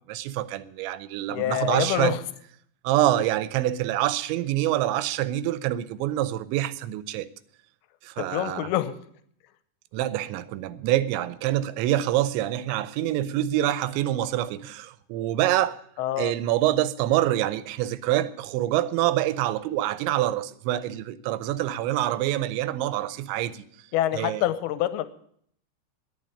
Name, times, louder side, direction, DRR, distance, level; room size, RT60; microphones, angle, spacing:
voice 1, 0.1-2.1 2.8-7.3 8.0-8.7 9.9-15.8 16.2-23.6 24.1-24.4, right 14 dB, 90° right, 3.0 m, -26 dB
voice 2, 1.3-2.2 8.2-8.9 16.0-16.3 23.9-25.1, left 13 dB, 80° left, 2.5 m, -26 dB
11.0 x 9.1 x 9.9 m
omnidirectional pair, 5.1 m